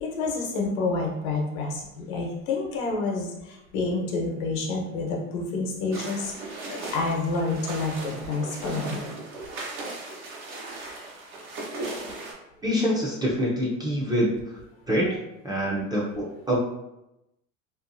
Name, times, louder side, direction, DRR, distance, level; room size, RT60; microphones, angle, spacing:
voice 1, 0.0-9.1 15.1-15.2 15.7-15.9, left 3 dB, 80° left, 0 dB, 0.9 m, -29 dB
sound 1, 5.9-12.3, right 2 dB, 85° right, 0.9 m, -37 dB
voice 2, 12.6-14.3 14.9-15.1 15.4-16.6, equal, 10° right, -5 dB, 0.3 m, -25 dB
2.6 x 2.1 x 2.5 m, 0.90 s
supercardioid pair, 105°, 40 cm